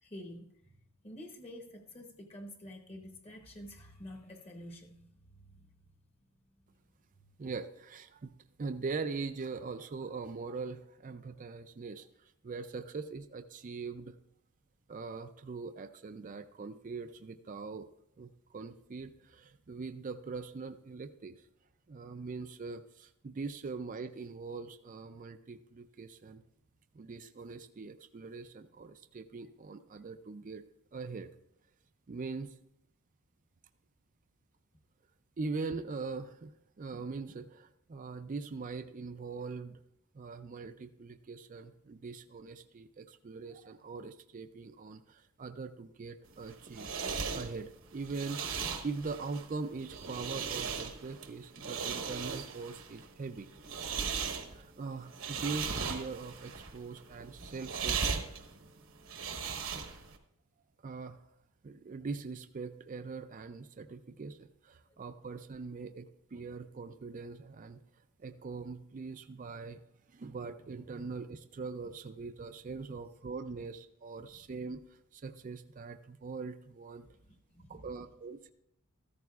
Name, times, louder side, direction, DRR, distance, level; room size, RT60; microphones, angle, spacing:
voice 1, 0.0-0.8 1.0-5.7 64.9-65.0 73.5-73.6 77.3-77.9, left 1 dB, 25° left, 3 dB, 0.9 m, -49 dB
voice 2, 7.4-8.3 8.6-14.2 14.9-17.9 18.2-21.5 21.9-26.4 26.9-30.6 30.9-31.3 32.1-32.6 35.4-36.5 36.8-39.8 40.1-46.9 47.3-48.4 48.8-53.5 54.5-58.0 58.2-58.3 60.8-61.3 61.6-66.1 66.3-69.8 70.1-77.1 77.7-78.5, right 4 dB, 35° right, 9 dB, 0.4 m, -42 dB
sound 1, 46.3-60.2, right 6 dB, 65° right, 1.0 m, -38 dB
14.0 x 13.5 x 2.4 m, 0.79 s
head